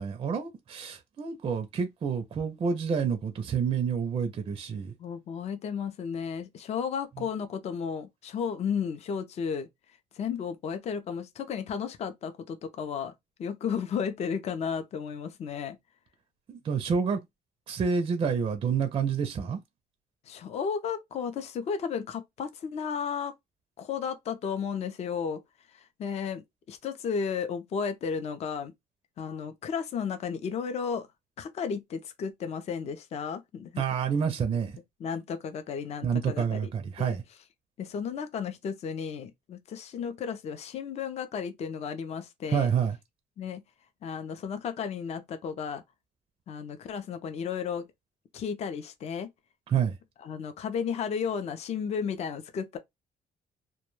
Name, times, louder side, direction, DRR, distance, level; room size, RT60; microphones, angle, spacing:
voice 1, 0.0-4.9 16.5-17.2 17.7-19.6 33.8-34.7 36.0-37.2 42.5-43.0 49.7-49.9, right 6 dB, 30° right, 0.4 m, -28 dB
voice 2, 5.0-9.7 10.1-13.1 13.4-15.8 20.3-23.3 23.8-25.4 25.7-26.4 26.7-28.7 29.2-31.1 31.4-33.8 35.0-36.7 37.0-37.2 37.8-42.7 43.4-43.6 44.0-45.8 46.5-47.8 48.3-49.3 50.2-52.8, left 6 dB, 40° left, 0.4 m, -33 dB
2.2 x 2.1 x 3.0 m
cardioid pair, 135°, 17 cm